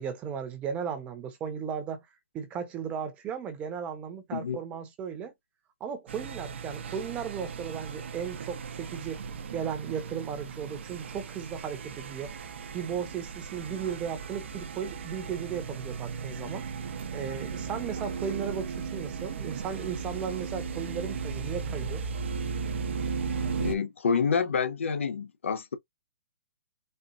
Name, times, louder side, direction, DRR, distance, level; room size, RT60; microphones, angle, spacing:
voice 1, 0.0-2.1 2.3-5.3 5.8-9.3 9.5-12.4 12.7-16.7 17.1-22.0, right 7 dB, 20° right, 0.8 m, -36 dB
sound 1, 6.1-23.7, right 5 dB, 65° right, 0.8 m, -36 dB
voice 2, 23.6-25.8, left 6 dB, 90° left, 0.7 m, -28 dB
4.4 x 2.4 x 2.5 m
hypercardioid pair, 155°, 7 cm